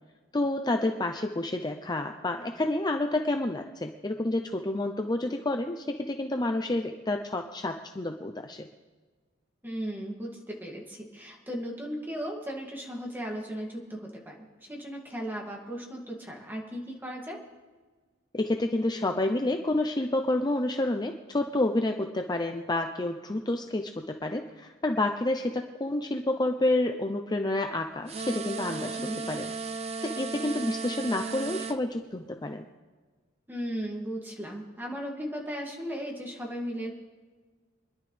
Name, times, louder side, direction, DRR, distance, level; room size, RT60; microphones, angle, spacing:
voice 1, 0.3-8.7 18.3-29.0 29.3-29.5 30.0-32.6, left 2 dB, 20° left, 5 dB, 0.6 m, -29 dB
voice 2, 9.6-17.4 29.0-29.2 33.5-36.9, equal, 10° right, -1 dB, 2.4 m, -36 dB
sound 1, 28.1-31.8, right 4 dB, 35° right, 0.7 m, -35 dB
25.5 x 11.0 x 3.4 m, 1.4 s
head